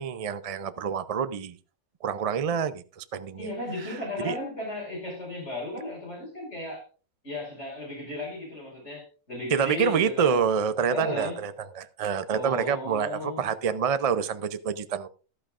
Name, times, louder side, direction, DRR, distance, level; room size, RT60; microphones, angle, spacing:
voice 1, 0.0-1.6 2.0-3.5 4.2-4.4 9.5-15.1, right 7 dB, 50° right, 0.4 m, -27 dB
voice 2, 3.4-6.9 7.2-10.4 10.9-11.4 12.3-13.5, left 2 dB, 55° left, 5.9 m, -35 dB
13.5 x 12.0 x 2.5 m
omnidirectional pair, 1.4 m